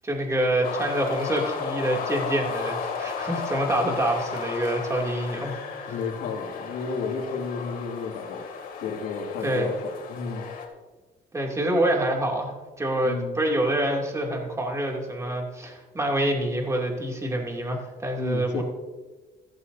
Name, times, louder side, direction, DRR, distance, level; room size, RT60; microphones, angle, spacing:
voice 1, 0.0-5.5 5.8-6.0 9.4-9.7 11.3-18.6, right 1 dB, 15° right, 0 dB, 2.7 m, -26 dB
sound 1, 0.6-10.6, left 5 dB, 60° left, 2.5 m, -34 dB
voice 2, 5.9-8.5 8.8-10.5 13.0-13.4 18.2-18.6, left 5 dB, 85° left, 0 dB, 2.4 m, -32 dB
14.5 x 14.5 x 2.7 m, 1.2 s
cardioid pair, 110°, 17 cm